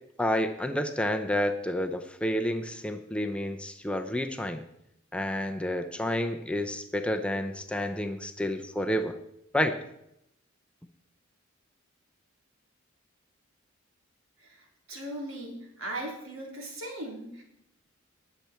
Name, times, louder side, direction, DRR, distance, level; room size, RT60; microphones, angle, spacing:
voice 1, 0.2-4.6 5.1-9.2 9.5-9.8, left 1 dB, 5° left, 6 dB, 0.6 m, -30 dB
voice 2, 14.4-17.4, right 1 dB, 80° right, -1 dB, 3.7 m, -39 dB
19.5 x 7.1 x 4.4 m, 0.81 s
head